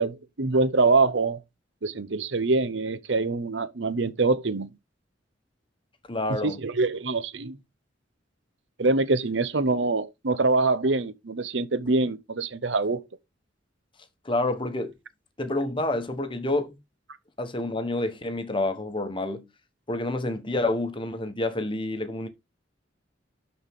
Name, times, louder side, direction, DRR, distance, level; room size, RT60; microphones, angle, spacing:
voice 1, 0.0-1.4 1.8-4.7 6.4-7.6 8.8-13.0, right 3 dB, 70° right, 0.8 m, -24 dB
voice 2, 6.1-6.6 14.2-15.0 15.4-16.8 17.4-19.5 19.9-22.3, left 2 dB, 25° left, 1.2 m, -28 dB
12.0 x 4.4 x 3.7 m
head